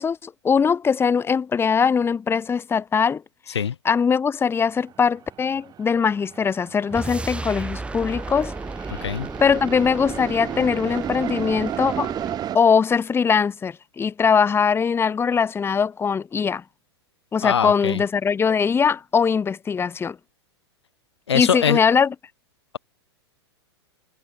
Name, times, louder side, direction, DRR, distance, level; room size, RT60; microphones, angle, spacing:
voice 1, 0.0-3.2 3.9-8.5 8.9-9.0 9.4-12.1 12.5-16.6 17.3-20.2 21.3-22.1, left 6 dB, 15° left, 2.1 m, -21 dB
sound 1, 4.8-4.9 5.2-12.6, right 11 dB, 30° right, 6.1 m, -34 dB
sound 2, 6.9-12.5, right 2 dB, 10° right, 5.9 m, -34 dB
voice 2, 17.4-18.0 21.3-21.8, left 8 dB, 75° left, 3.0 m, -22 dB
hypercardioid pair, 105°, 14 cm